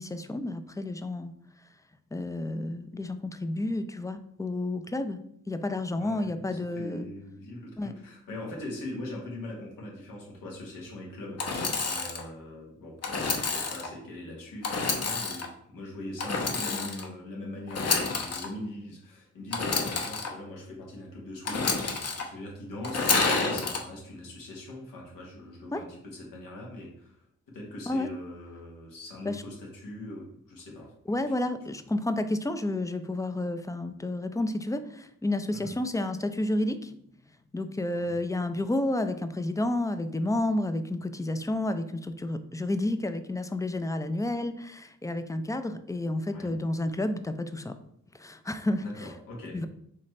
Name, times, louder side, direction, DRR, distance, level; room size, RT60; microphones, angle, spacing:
voice 1, 0.0-1.3 2.1-5.2 5.5-7.1 7.8-7.9 25.7-25.8 27.9-28.1 29.3-29.4 31.1-37.0 37.5-47.7 48.2-49.1 49.5-49.7, left 1 dB, 10° left, 10 dB, 0.4 m, -30 dB
voice 2, 5.9-30.9 35.5-35.7 37.9-38.2 46.3-46.5 48.8-49.7, left 1 dB, 80° left, -2 dB, 1.3 m, -41 dB
Engine / Sawing, 11.4-12.2 13.0-13.9 14.6-15.5 16.2-17.1 17.7-18.4 19.5-20.3 21.4-22.2 22.8-23.8, left 4 dB, 50° left, 0.9 m, -28 dB
4.2 x 3.1 x 3.1 m, 0.71 s
supercardioid pair, 45°, 32 cm